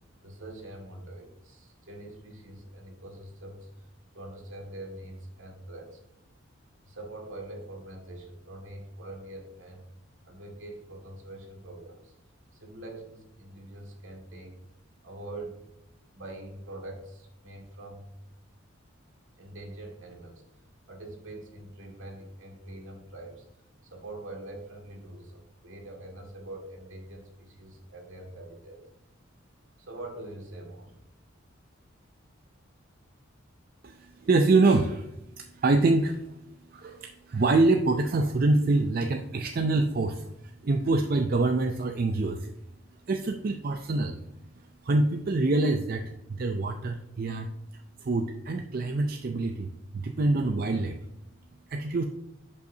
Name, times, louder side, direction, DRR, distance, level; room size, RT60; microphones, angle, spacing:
voice 1, 0.2-3.9 4.1-6.0 6.8-9.8 10.2-12.1 12.5-14.6 15.0-15.6 16.1-18.0 19.4-20.4 20.9-28.8 29.8-31.0, right 1 dB, 70° right, 0 dB, 1.9 m, -44 dB
voice 2, 33.8-35.1 35.4-36.3 36.7-42.5 43.1-44.2 44.8-47.5 48.0-51.0 51.7-52.0, right 2 dB, 45° right, 5 dB, 0.4 m, -25 dB
10.5 x 5.5 x 2.7 m, 0.85 s
head